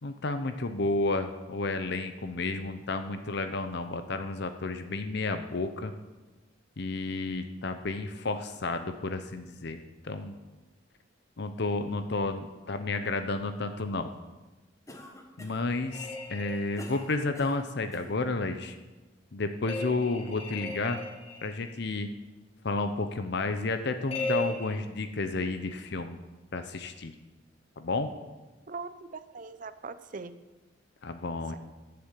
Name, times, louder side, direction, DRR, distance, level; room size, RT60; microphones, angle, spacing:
voice 1, 0.0-5.9 6.8-10.3 11.4-14.1 15.4-18.8 19.3-21.0 21.4-22.1 22.6-26.2 26.5-27.1 27.8-28.1 31.0-31.6, left 3 dB, 60° left, 8 dB, 0.7 m, -31 dB
Cough, 14.9-15.7 16.3-18.1, left 1 dB, 15° left, 1.3 m, -47 dB
sound 1, 15.9-17.3 19.6-21.8 24.1-24.8, left 3 dB, 30° left, 2.1 m, -36 dB
voice 2, 28.7-30.4, right 4 dB, 45° right, 12 dB, 0.6 m, -41 dB
11.5 x 6.9 x 8.2 m, 1.2 s
head